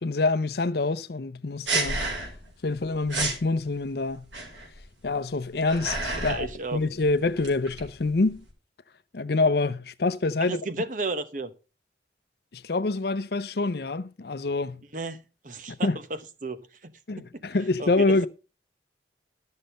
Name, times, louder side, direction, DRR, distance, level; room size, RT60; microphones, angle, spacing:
voice 1, 0.0-2.0 2.6-4.3 5.0-8.4 9.1-10.6 12.5-14.8 15.7-16.0 17.1-18.3, left 3 dB, 55° left, 0.6 m, -26 dB
sound 1, 1.7-2.5 2.8-2.9 3.1-3.4 4.3-4.8 5.4-6.5 6.8-8.4, right 3 dB, 90° right, 4.6 m, -30 dB
voice 2, 6.2-6.8 10.4-11.5 14.9-15.2 15.4-17.4 17.8-18.3, right 2 dB, 45° right, 1.0 m, -34 dB
12.5 x 6.5 x 5.4 m
head